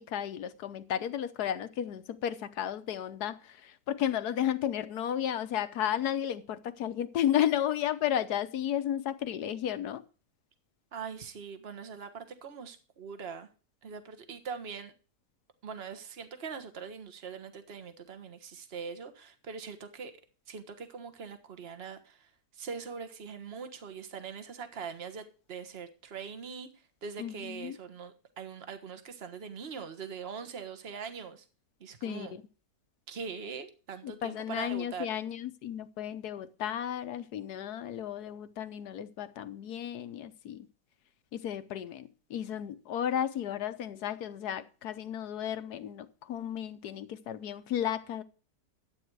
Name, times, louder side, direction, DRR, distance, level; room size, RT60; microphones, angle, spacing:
voice 1, 0.0-10.0 27.2-27.8 32.0-32.4 34.0-40.7 41.3-48.2, left 10 dB, 75° left, 1.4 m, -33 dB
voice 2, 10.9-13.5 13.8-14.9 15.6-20.1 20.5-26.7 27.0-31.4 31.8-32.4 33.1-35.1, right 6 dB, 40° right, 1.5 m, -42 dB
12.5 x 8.9 x 4.7 m
omnidirectional pair, 1.7 m